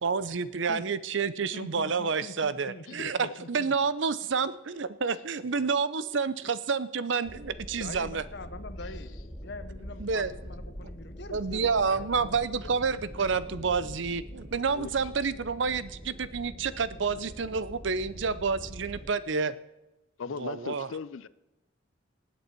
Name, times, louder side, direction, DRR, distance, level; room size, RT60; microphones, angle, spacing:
voice 1, 0.0-8.2 10.0-10.3 11.3-19.5 20.4-20.9, right 5 dB, 65° right, 0.6 m, -29 dB
voice 2, 1.5-3.8 7.8-12.8, left 2 dB, 55° left, 1.0 m, -44 dB
voice 3, 3.0-3.3 14.7-14.9 20.2-21.3, left 5 dB, 75° left, 0.5 m, -38 dB
sound 1, 7.2-19.1, equal, 10° left, 1.3 m, -44 dB
19.0 x 8.3 x 4.5 m
head